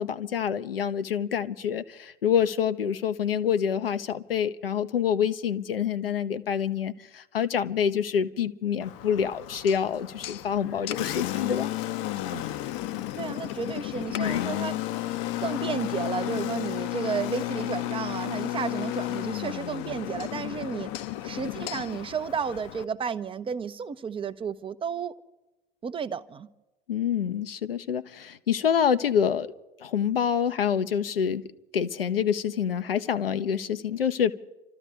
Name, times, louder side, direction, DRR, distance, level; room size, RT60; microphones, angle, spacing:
voice 1, 0.0-11.7 14.2-14.4 26.9-29.5 29.8-31.4 31.7-34.3, left 8 dB, 75° left, 0.8 m, -27 dB
Engine, 8.8-22.8, left 14 dB, 45° left, 0.7 m, -33 dB
voice 2, 13.1-15.1 15.4-20.9 21.2-25.1 25.8-26.5, right 6 dB, 20° right, 0.5 m, -32 dB
28.5 x 13.5 x 3.5 m
figure-of-eight pair, 75°, 29 cm